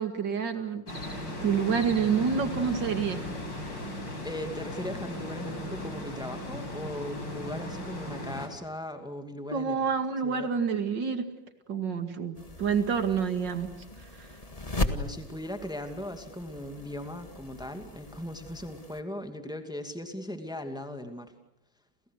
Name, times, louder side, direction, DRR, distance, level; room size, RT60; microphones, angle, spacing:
voice 1, 0.0-3.3 3.6-3.8 9.5-11.3 11.7-13.7 14.2-14.3, right 6 dB, 70° right, 8 dB, 2.9 m, -28 dB
sound 1, 0.9-8.5, left 1 dB, 80° left, 6.2 m, -37 dB
voice 2, 4.2-9.8 10.2-10.5 14.9-21.3, left 1 dB, ahead, 6 dB, 2.5 m, -38 dB
sound 2, 12.3-19.0, left 2 dB, 20° left, 1.7 m, -38 dB
30.0 x 29.0 x 6.6 m, 0.80 s
omnidirectional pair, 2.0 m